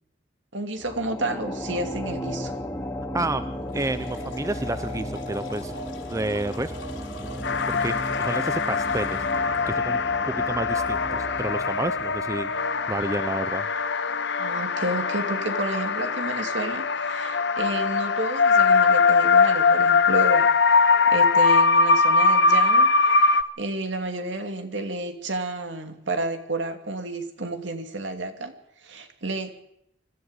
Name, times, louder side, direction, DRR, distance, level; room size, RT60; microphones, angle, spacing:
voice 1, 0.5-2.5 14.4-28.6 28.8-29.5, right 2 dB, 70° right, 6 dB, 2.7 m, -31 dB
sound 1, 0.8-13.3, equal, 15° left, 2.4 m, -35 dB
voice 2, 3.1-3.4 3.7-5.7 6.1-6.7 7.2-9.2 9.7-11.0 11.4-12.5 12.9-13.7, right 2 dB, 15° right, 12 dB, 0.7 m, -30 dB
sound 2, 3.7-9.6, left 5 dB, 80° left, 4.8 m, -45 dB
sound 3, 7.4-23.4, left 4 dB, 65° left, 0.9 m, -21 dB
25.0 x 13.0 x 8.1 m, 0.76 s
head